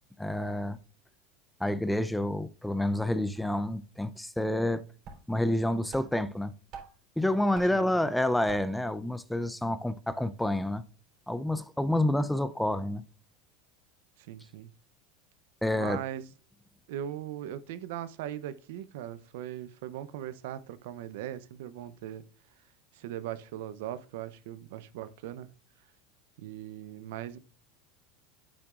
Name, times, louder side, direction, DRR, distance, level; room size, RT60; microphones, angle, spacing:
voice 1, 0.2-0.8 1.6-4.8 5.3-6.5 7.2-10.8 11.3-13.0 15.6-16.0, left 1 dB, 5° left, 0.5 m, -28 dB
sound 1, 3.4-3.5 4.7-4.8 5.0-5.6 5.9-7.1 7.5-7.9 8.5-8.9, right 4 dB, 50° right, 3.7 m, -47 dB
voice 2, 14.3-14.7 15.7-16.3 16.9-22.2 22.9-25.5 26.4-27.4, right 11 dB, 75° right, 0.6 m, -39 dB
8.6 x 8.4 x 2.4 m
supercardioid pair, 125°, 0 cm